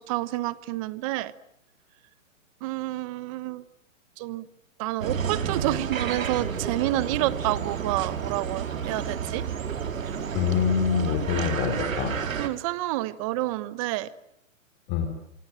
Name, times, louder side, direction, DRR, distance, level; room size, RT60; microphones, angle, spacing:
voice 1, 0.0-1.3 2.6-3.6 4.2-4.5 4.8-9.4 12.4-14.1, right 17 dB, 25° right, 16 dB, 1.2 m, -29 dB
sound 1, 5.0-12.5, right 7 dB, 90° right, 4.1 m, -31 dB
voice 2, 10.3-12.2 14.9-15.1, left 7 dB, 25° left, 6 dB, 3.4 m, -25 dB
27.0 x 24.0 x 9.1 m, 0.75 s
hypercardioid pair, 160°, 39 cm